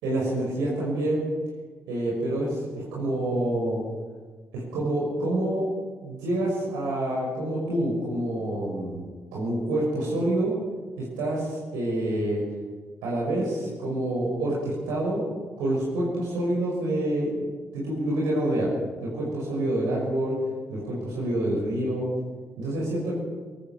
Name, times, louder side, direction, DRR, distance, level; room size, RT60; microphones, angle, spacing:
voice 1, 0.0-1.2 1.9-3.8 4.5-5.7 6.0-9.0 9.3-10.5 11.0-12.4 13.0-15.2 15.6-18.7 19.0-20.4 20.7-22.1 22.6-23.2, right 1 dB, 75° right, -4 dB, 5.9 m, -27 dB
23.0 x 18.0 x 6.7 m, 1.4 s
hypercardioid pair, 45°, 6 cm